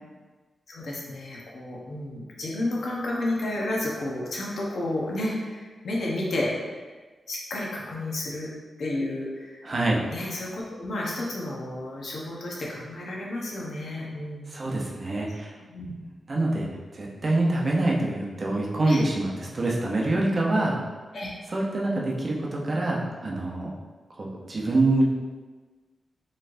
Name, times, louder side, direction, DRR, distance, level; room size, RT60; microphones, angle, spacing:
voice 1, 0.7-6.5 7.3-8.5 8.8-9.6 10.1-14.6 15.7-15.9 18.9-19.0 21.1-21.3, left 1 dB, 70° left, -3 dB, 0.8 m, -31 dB
voice 2, 9.6-10.0 14.5-15.5 16.3-16.7 16.9-20.8 21.5-23.7 24.2-25.0, right 2 dB, 40° right, -3 dB, 0.6 m, -25 dB
4.2 x 3.2 x 2.6 m, 1.3 s
wide cardioid pair, 120°, 0 cm